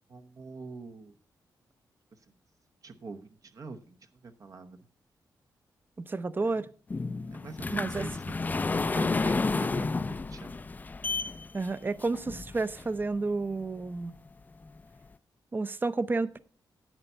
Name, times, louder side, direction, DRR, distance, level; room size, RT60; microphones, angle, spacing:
voice 1, 0.1-1.2 2.8-4.8 6.4-6.6 7.3-8.4 8.9-10.7, right 4 dB, 50° right, 0.9 m, -45 dB
voice 2, 6.0-6.7 7.7-8.1 11.5-14.2 15.5-16.4, right 3 dB, 25° right, 0.6 m, -31 dB
sound 1, 6.9-13.0 13.6-13.7 14.3-14.4 14.7-14.8, left 3 dB, 25° left, 0.4 m, -31 dB
10.5 x 7.9 x 5.5 m
cardioid pair, 110°, 8 cm